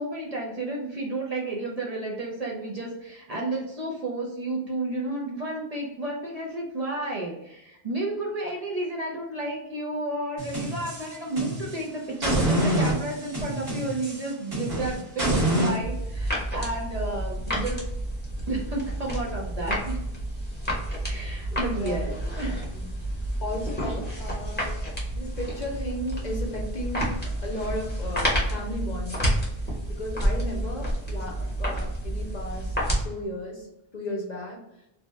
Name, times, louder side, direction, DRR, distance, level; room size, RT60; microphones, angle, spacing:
voice 1, 0.0-17.8 18.5-20.0 21.0-22.6 24.1-24.4 25.6-25.7, right 2 dB, 45° right, -3 dB, 0.6 m, -32 dB
sound 1, 10.4-11.8 12.2-15.8, right 1 dB, 65° right, 1.4 m, -27 dB
Knuckles Cracking, 15.8-33.0, right 1 dB, 10° left, 0.8 m, -30 dB
voice 2, 20.8-21.2 21.5-22.9 23.4-24.7 25.1-29.4 29.9-32.8 33.0-33.7 33.9-34.6, left 1 dB, 50° left, -1 dB, 0.7 m, -35 dB
2.7 x 2.2 x 3.1 m, 0.85 s
omnidirectional pair, 1.0 m